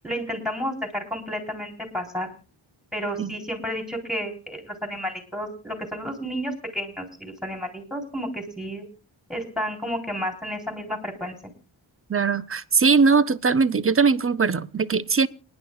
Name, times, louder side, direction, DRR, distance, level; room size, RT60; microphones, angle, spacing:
voice 1, 0.0-2.3 2.9-8.8 9.3-11.4, equal, ahead, 3.7 m, -31 dB
voice 2, 12.1-15.3, right 5 dB, 30° right, 0.6 m, -20 dB
29.5 x 10.5 x 2.4 m
wide cardioid pair, 75°, 48 cm